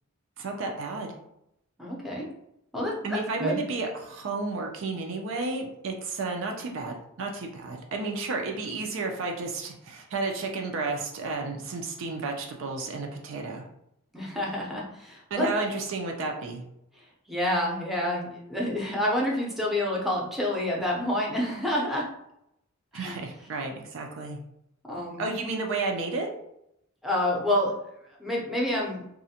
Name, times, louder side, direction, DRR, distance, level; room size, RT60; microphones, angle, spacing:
voice 1, 0.4-1.1 3.0-13.6 15.3-16.6 22.9-24.4 25.2-26.3, right 3 dB, 70° right, 2 dB, 0.4 m, -32 dB
voice 2, 1.8-2.3 2.7-3.6 14.1-15.5 16.9-22.0 22.9-23.2 24.8-25.2 27.0-27.7 28.2-29.0, left 1 dB, ahead, -3 dB, 0.5 m, -28 dB
2.4 x 2.1 x 2.7 m, 0.79 s
head